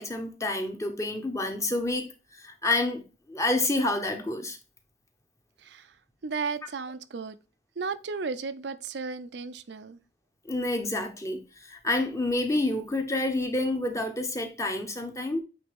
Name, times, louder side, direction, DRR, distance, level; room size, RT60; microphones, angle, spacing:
voice 1, 0.0-3.0 3.3-4.6 10.4-15.4, left 2 dB, 15° left, 1.0 m, -28 dB
voice 2, 5.6-5.9 6.2-7.4 7.8-10.0, right 4 dB, 70° right, 0.6 m, -34 dB
9.2 x 3.4 x 3.6 m
head